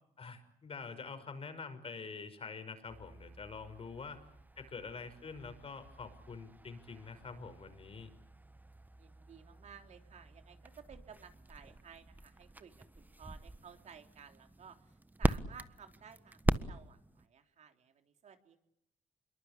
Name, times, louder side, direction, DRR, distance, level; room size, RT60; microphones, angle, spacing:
voice 1, 0.2-4.3 4.6-8.1, left 5 dB, 45° left, 10 dB, 5.9 m, -46 dB
sound 1, 2.9-17.3, right 2 dB, 15° right, 1.4 m, -41 dB
voice 2, 9.0-18.6, right 7 dB, 60° right, 5 dB, 3.6 m, -56 dB
26.0 x 23.0 x 8.6 m, 0.75 s
supercardioid pair, 65°, 14 cm